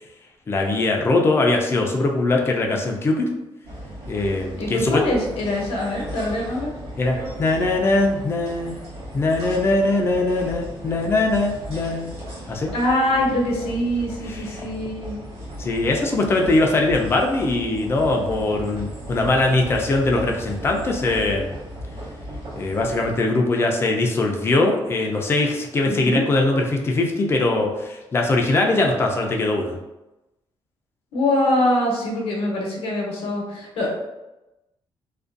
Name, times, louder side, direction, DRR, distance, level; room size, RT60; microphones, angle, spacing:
voice 1, 0.5-3.3 4.1-5.0 7.0-8.7 9.1-12.1 12.5-12.7 14.2-14.7 15.6-21.5 22.5-29.8, left 2 dB, 25° left, 1 dB, 0.3 m, -21 dB
sound 1, 3.6-23.2, equal, 85° right, 0.8 m, -36 dB
voice 2, 4.6-6.7 12.7-15.2 25.8-26.2 31.1-33.9, left 1 dB, 85° left, -1 dB, 0.7 m, -23 dB
2.4 x 2.2 x 2.5 m, 0.99 s
wide cardioid pair, 175°, 10 cm